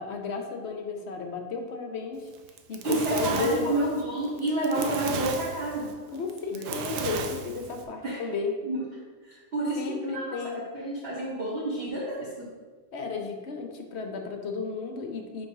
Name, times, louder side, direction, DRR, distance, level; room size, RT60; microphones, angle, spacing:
voice 1, 0.0-2.3 2.7-3.7 4.4-4.5 5.0-5.1 6.1-8.5 9.8-10.6 12.9-15.5, left 4 dB, 55° left, 4 dB, 0.8 m, -33 dB
Fire, 2.4-7.8, right 5 dB, 80° right, 1.2 m, -34 dB
voice 2, 2.8-5.9 6.5-6.7 8.0-8.2 8.6-8.8 9.2-10.4 10.7-12.5, right 2 dB, 40° right, -7 dB, 1.3 m, -29 dB
5.5 x 5.2 x 4.7 m, 1.4 s
omnidirectional pair, 1.7 m